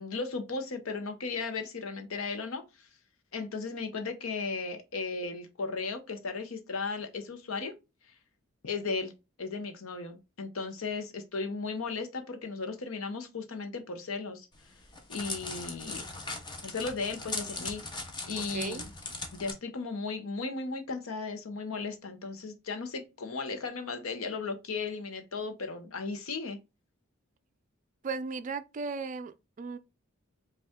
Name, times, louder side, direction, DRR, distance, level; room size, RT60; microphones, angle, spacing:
voice 1, 0.0-2.9 3.3-7.7 8.6-9.1 9.4-14.5 15.1-16.0 16.6-17.8 18.3-18.9 19.3-26.6, left 4 dB, 85° left, 0.8 m, -36 dB
Crackle, 14.5-19.5, left 3 dB, 20° left, 0.7 m, -39 dB
voice 2, 18.5-18.9 28.0-29.8, right 4 dB, 35° right, 0.3 m, -36 dB
5.2 x 2.4 x 3.5 m
head